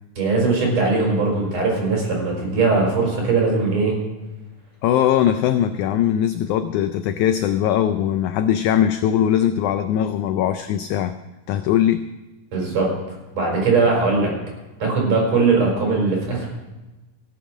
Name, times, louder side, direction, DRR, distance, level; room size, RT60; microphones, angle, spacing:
voice 1, 0.2-3.9 12.5-12.9 13.3-14.3 14.8-16.5, right 3 dB, 50° right, -1 dB, 5.5 m, -20 dB
voice 2, 4.8-11.1 11.5-12.1, left 10 dB, 85° left, 10 dB, 1.7 m, -20 dB
17.0 x 7.3 x 6.2 m, 1.1 s
omnidirectional pair, 4.1 m